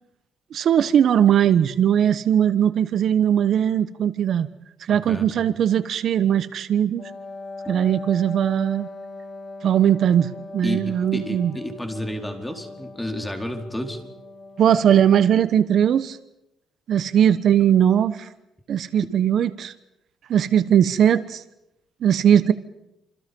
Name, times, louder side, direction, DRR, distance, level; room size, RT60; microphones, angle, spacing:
voice 1, 0.5-4.5 4.8-7.1 7.7-8.9 9.6-11.5 14.6-16.2 16.9-18.3 18.7-19.7 20.3-21.4 22.0-22.5, right 9 dB, 65° right, 14 dB, 1.1 m, -19 dB
voice 2, 5.1-5.5 10.6-14.0, left 1 dB, 5° left, 5 dB, 4.3 m, -31 dB
Wind instrument woodwind instrument, 7.0-15.0, left 3 dB, 45° left, 2.7 m, -40 dB
28.5 x 27.0 x 5.4 m, 0.84 s
cardioid pair, 90°, 0 cm